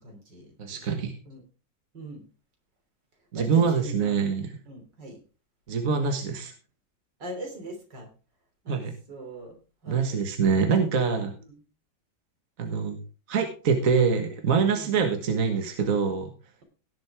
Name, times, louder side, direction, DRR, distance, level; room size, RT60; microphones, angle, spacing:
voice 1, 0.0-0.9 1.3-1.4 1.9-2.2 3.4-4.2 4.7-5.2 7.2-8.1 8.6-8.8 9.1-10.2 11.5-11.6 14.7-15.0, right 1 dB, 75° right, 3 dB, 4.1 m, -41 dB
voice 2, 0.6-1.1 3.3-4.6 5.7-6.5 8.7-8.9 9.9-11.3 12.6-13.0 13.3-16.3, right 5 dB, 50° right, 5 dB, 1.8 m, -25 dB
17.5 x 7.7 x 3.6 m, 0.34 s
omnidirectional pair, 1.9 m